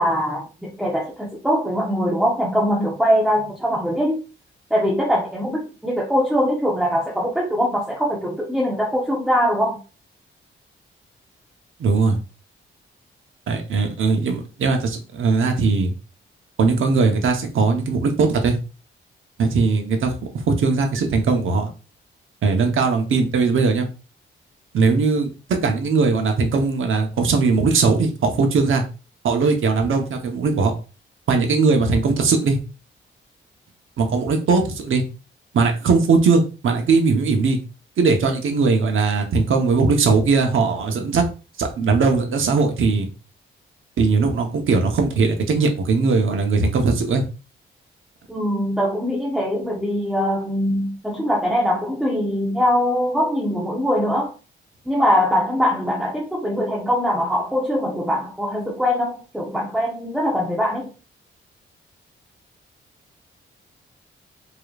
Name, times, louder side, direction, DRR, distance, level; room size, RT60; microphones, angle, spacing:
voice 1, 0.0-4.2 4.7-9.8 48.3-54.3 54.9-60.9, equal, ahead, 1.0 m, -22 dB
voice 2, 11.8-12.2 13.5-15.9 16.6-18.6 19.4-21.7 22.4-23.9 24.7-28.8 29.2-30.7 31.3-32.6 34.0-35.0 35.5-37.6 38.0-41.2 41.6-43.1 44.0-47.2, right 4 dB, 75° right, 1.0 m, -19 dB
5.0 x 3.0 x 2.4 m
cardioid pair, 95°, 21 cm